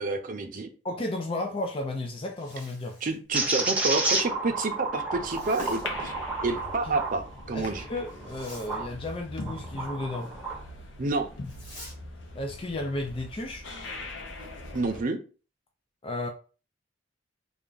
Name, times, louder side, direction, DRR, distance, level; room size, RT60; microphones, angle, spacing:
voice 1, 0.0-0.7 3.0-6.1 6.4-7.8 11.0-11.3 14.7-15.2, right 3 dB, 45° right, 0.6 m, -29 dB
voice 2, 0.8-3.0 6.8-6.9 7.5-10.3 12.3-13.7 16.0-16.3, left 2 dB, 30° left, 0.4 m, -33 dB
Zipper (clothing), 2.2-3.2 5.2-5.9 8.2-8.7 11.4-12.0, left 1 dB, 65° left, 2.1 m, -48 dB
sound 1, 3.3-8.9 9.4-10.6, right 2 dB, 10° right, 0.8 m, -31 dB
sound 2, 5.1-15.0, left 2 dB, 80° left, 0.8 m, -41 dB
3.4 x 2.4 x 3.8 m
head